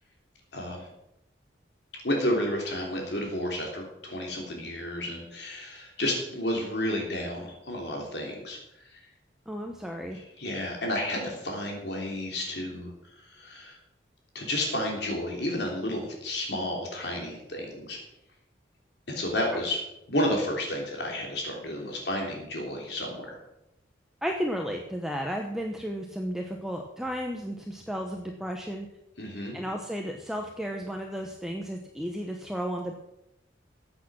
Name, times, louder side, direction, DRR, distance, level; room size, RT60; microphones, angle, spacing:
voice 1, 0.5-0.9 2.0-9.1 10.1-13.8 14.3-18.0 19.1-19.8 20.1-23.4 29.2-29.6, left 1 dB, 65° left, 0 dB, 3.2 m, -31 dB
voice 2, 9.5-10.2 24.2-28.9 29.5-32.9, equal, ahead, 2 dB, 1.0 m, -33 dB
15.0 x 8.8 x 6.2 m, 0.87 s
head